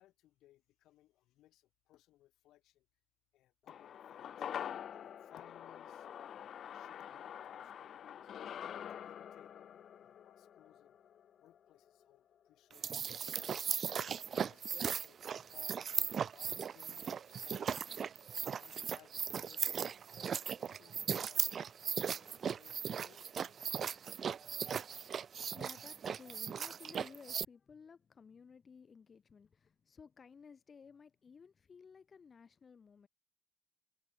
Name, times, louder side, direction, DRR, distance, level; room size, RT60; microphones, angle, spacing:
voice 1, 0.0-2.8 3.3-4.5 5.0-8.3 9.0-11.0 11.4-13.5 14.3-17.8 18.4-21.6 22.2-24.0, left 15 dB, 90° left, 8.0 m, -65 dB
sound 1, 3.7-12.2 12.5-12.6, left 9 dB, 65° left, 1.1 m, -46 dB
sound 2, 12.7-27.5, right 7 dB, 55° right, 0.3 m, -38 dB
voice 2, 25.3-33.1, left 6 dB, 40° left, 4.9 m, -56 dB
cardioid pair, 90°, 0 cm